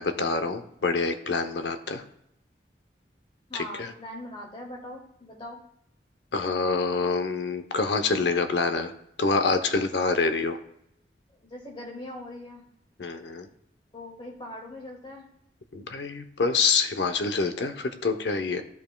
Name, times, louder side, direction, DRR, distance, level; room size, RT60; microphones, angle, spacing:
voice 1, 0.0-2.0 3.5-3.9 6.3-8.9 9.2-10.6 13.0-13.5 15.7-18.6, left 4 dB, 75° left, 8 dB, 0.7 m, -26 dB
voice 2, 3.5-5.6 11.4-12.6 13.9-15.3, left 1 dB, 30° left, -1 dB, 2.0 m, -41 dB
12.5 x 5.5 x 2.2 m, 0.76 s
head